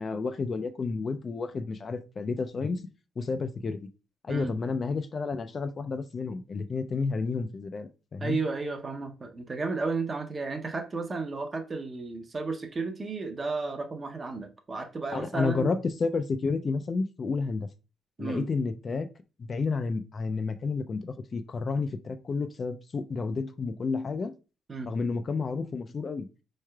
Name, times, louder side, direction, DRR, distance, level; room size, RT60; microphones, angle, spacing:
voice 1, 0.0-2.8 3.2-3.8 4.2-8.4 15.1-17.7 18.2-19.1 19.4-24.3 24.9-26.3, left 4 dB, 40° left, 0.3 m, -31 dB
voice 2, 8.2-15.7 18.2-18.5 24.7-24.9, right 3 dB, 35° right, 0.6 m, -33 dB
4.5 x 3.2 x 2.2 m
cardioid pair, 100°, 0 cm